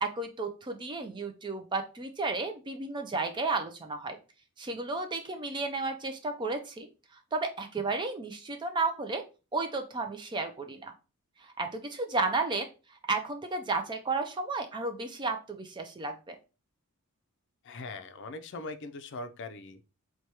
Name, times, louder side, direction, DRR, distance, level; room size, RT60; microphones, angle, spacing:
voice 1, 0.0-4.2 4.6-6.9 7.3-9.2 9.5-10.9 11.6-12.7 13.1-16.4, right 3 dB, 20° right, 6 dB, 0.3 m, -33 dB
voice 2, 17.6-19.8, left 3 dB, 55° left, 9 dB, 0.4 m, -41 dB
4.6 x 2.2 x 2.8 m, 0.32 s
head